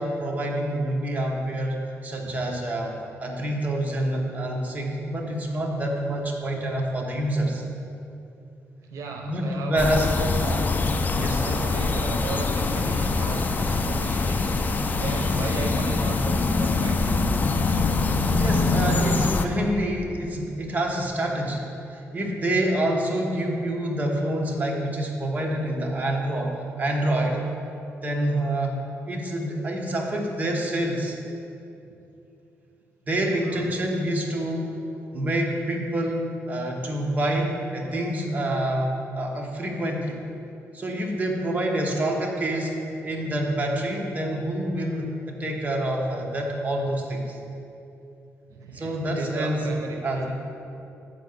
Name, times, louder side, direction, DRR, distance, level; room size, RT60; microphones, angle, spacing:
voice 1, 0.0-1.8 2.0-7.6 9.2-10.6 11.2-11.4 18.3-21.6 21.9-27.4 28.0-28.8 29.1-31.2 33.1-40.2 40.7-42.8 43.0-47.4 48.7-49.7 50.0-50.3, right 1 dB, 30° right, 0 dB, 1.2 m, -27 dB
voice 2, 8.9-9.9 10.2-10.3 11.3-14.6 15.0-17.2 33.4-33.8 48.5-50.3, right 4 dB, 80° right, 3 dB, 0.7 m, -35 dB
sound 1, 9.8-19.5, left 3 dB, 35° left, 0.5 m, -24 dB
8.2 x 4.7 x 6.6 m, 2.7 s
cardioid pair, 105°, 5 cm